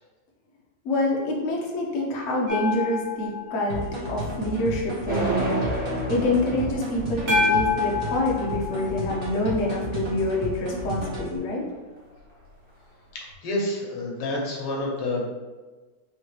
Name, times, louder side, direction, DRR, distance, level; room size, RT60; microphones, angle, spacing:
voice 1, 0.8-5.6 6.1-11.7, left 1 dB, 60° left, -2 dB, 0.8 m, -26 dB
sound 1, 2.5-5.3 7.3-10.5 13.3-13.4, left 4 dB, 75° right, 2.2 m, -29 dB
sound 2, 3.7-11.4, equal, 40° right, 0.8 m, -33 dB
sound 3, 5.1-8.0, right 2 dB, 5° right, 0.7 m, -29 dB
voice 2, 13.1-15.2, left 2 dB, 90° left, -1 dB, 1.9 m, -29 dB
4.3 x 3.3 x 3.2 m, 1.3 s
omnidirectional pair, 2.4 m